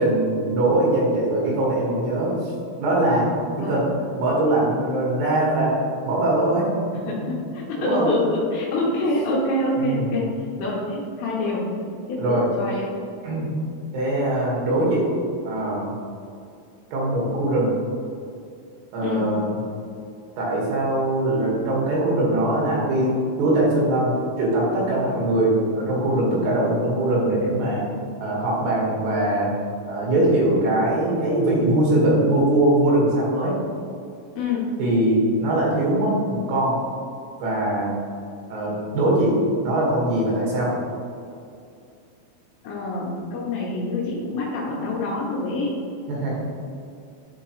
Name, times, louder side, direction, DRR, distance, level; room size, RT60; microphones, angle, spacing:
voice 1, 0.0-2.3 2.8-3.3 3.7-3.9 4.2-5.8 6.0-6.7 7.8-8.1 9.8-10.1 12.2-12.5 13.2-13.5 13.9-15.1 15.4-15.9 16.9-17.7 18.9-19.5 20.4-23.1 23.4-24.1 24.4-27.8 28.2-29.5 29.9-33.5 34.8-36.8 37.4-37.9 38.5-40.7 46.1-46.4, right 1 dB, 85° right, -4 dB, 4.4 m, -21 dB
voice 2, 7.1-11.6 12.1-12.9 19.0-19.4 34.3-34.7 42.6-45.8, left 2 dB, 75° left, -5 dB, 2.9 m, -26 dB
11.0 x 4.5 x 3.1 m, 2.5 s
omnidirectional pair, 5.9 m